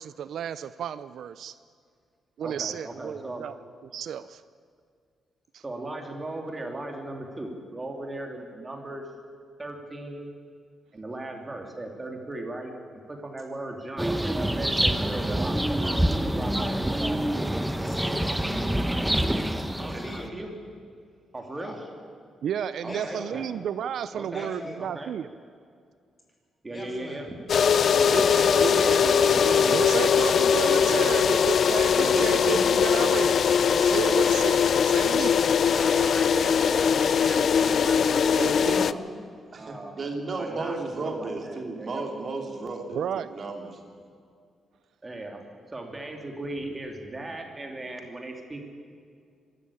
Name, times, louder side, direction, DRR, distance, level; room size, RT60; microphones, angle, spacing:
voice 1, 0.0-1.5 2.4-3.6 3.9-4.4 5.5-5.6 16.3-16.4 22.4-25.3 29.7-35.3 42.9-43.3, right 9 dB, 75° right, 14 dB, 0.5 m, -32 dB
voice 2, 2.4-3.5 5.6-9.1 9.6-10.3 10.9-12.7 13.1-15.6 16.2-17.0 19.8-20.5 21.3-21.7 22.8-23.5 24.1-24.5 24.8-25.1 26.6-27.4 28.1-29.0 29.3-29.5 29.8-30.0 31.1-31.2 35.7-39.1 39.5-40.1 40.4-42.0 45.0-48.6, right 2 dB, 20° right, 3 dB, 2.9 m, -37 dB
sound 1, 14.0-20.3, right 1 dB, 5° right, 1.0 m, -26 dB
voice 3, 17.7-18.8 19.8-20.4 21.5-21.8 22.8-23.4 24.2-24.8 26.7-27.2 28.2-28.8, left 1 dB, 25° left, 1 dB, 5.4 m, -41 dB
sound 2, 27.5-38.9, left 7 dB, 55° left, 0.5 m, -21 dB
voice 4, 27.9-30.1 30.5-31.1 31.9-32.8 38.4-39.0 39.5-43.7, right 3 dB, 45° right, 2 dB, 3.2 m, -33 dB
24.5 x 13.0 x 8.7 m, 2.2 s
cardioid pair, 105°, 0 cm